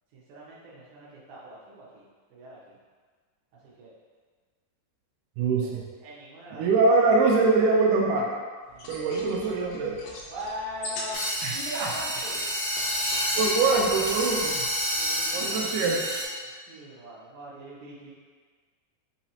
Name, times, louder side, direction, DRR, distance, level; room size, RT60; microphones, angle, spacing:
voice 1, 0.1-2.0 2.3-2.8 3.6-3.9 5.6-5.7 6.0-6.7 8.7-9.3 10.3-11.2 11.5-12.4 12.9-13.1 15.0-16.1 16.4-18.1, equal, 70° right, -7 dB, 2.1 m, -41 dB
voice 2, 5.4-5.8 6.5-8.3 8.9-10.0 11.4-11.9 13.4-14.7 15.3-16.0, right 3 dB, 90° right, -2 dB, 1.8 m, -23 dB
sound 1, 8.7-15.2, left 2 dB, 75° left, 2.2 m, -42 dB
sound 2, 11.1-16.3, equal, 55° left, 1.0 m, -29 dB
5.8 x 3.0 x 2.7 m, 1.5 s
omnidirectional pair, 4.3 m